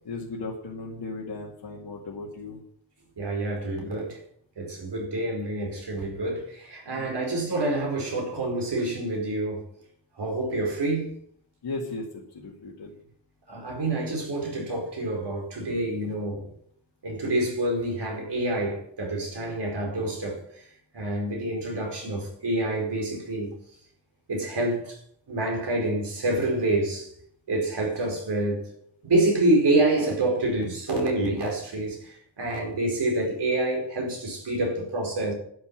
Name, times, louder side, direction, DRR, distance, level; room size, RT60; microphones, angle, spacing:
voice 1, 0.0-2.6 6.9-7.2 11.6-12.1 12.3-13.0, left 3 dB, 65° left, 2.3 m, -36 dB
voice 2, 3.2-4.2 4.6-9.6 10.2-11.1 13.5-16.5 17.0-20.4 20.9-23.5 24.3-25.0 25.3-27.1 27.5-28.7 29.0-35.3, right 2 dB, 65° right, 4.9 m, -27 dB
11.5 x 7.2 x 7.7 m
wide cardioid pair, 155°, 44 cm